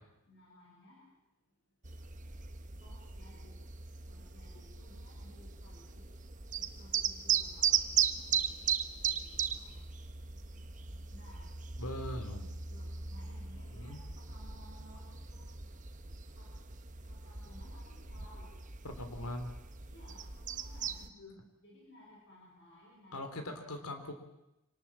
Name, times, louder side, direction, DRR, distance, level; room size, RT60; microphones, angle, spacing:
voice 1, 0.3-1.0 2.8-3.6 4.1-6.1 6.6-9.9 10.2-12.1 12.5-15.8 16.0-16.7 17.1-18.6 19.1-19.4 19.9-21.1 21.6-23.7, left 1 dB, 55° left, -3 dB, 6.7 m, -59 dB
sound 1, 1.8-21.1, right 8 dB, 35° right, 1.1 m, -37 dB
voice 2, 11.8-12.5 13.7-14.0 18.8-19.5 21.2-21.4 23.1-24.1, left 1 dB, 85° left, 7 dB, 3.4 m, -41 dB
26.0 x 19.0 x 7.5 m, 0.93 s
head